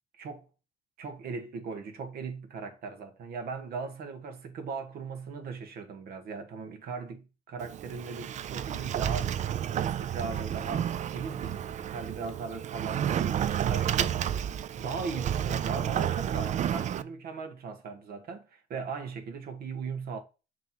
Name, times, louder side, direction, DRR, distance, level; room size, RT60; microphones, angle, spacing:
voice 1, 1.0-9.4 9.7-14.3 14.7-20.2, right 5 dB, 65° right, 1.6 m, -38 dB
Sliding door, 7.6-17.0, right 10 dB, 45° right, 0.5 m, -31 dB
6.8 x 3.2 x 5.9 m
cardioid pair, 110°, 17 cm